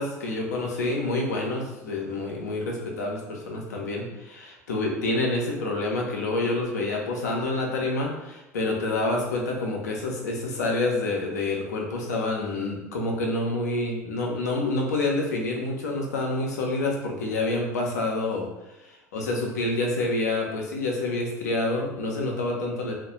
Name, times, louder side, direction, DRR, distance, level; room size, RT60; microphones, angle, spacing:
voice 1, 0.0-18.5 18.8-23.0, left 2 dB, 70° left, 0 dB, 0.5 m, -28 dB
2.3 x 2.1 x 2.8 m, 0.95 s
figure-of-eight pair, 65°, 9 cm